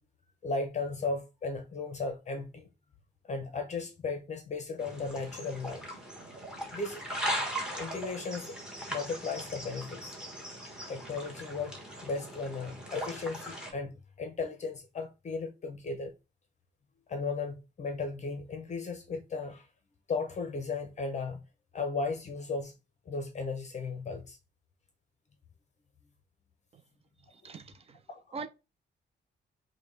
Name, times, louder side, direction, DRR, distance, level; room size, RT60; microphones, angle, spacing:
voice 1, 0.4-2.7 3.2-5.8 6.7-7.0 7.8-8.5 8.9-10.1 10.9-11.7 12.0-16.1 17.1-19.7 20.1-21.4 21.7-22.7 23.1-24.4 27.4-27.6 28.1-28.4, left 4 dB, 40° left, 0.6 m, -36 dB
sound 1, 4.8-13.7, equal, 5° right, 1.2 m, -39 dB
voice 2, 27.3-28.0 28.3-28.5, right 4 dB, 30° right, 0.5 m, -42 dB
5.3 x 2.2 x 3.2 m
wide cardioid pair, 160°, 19 cm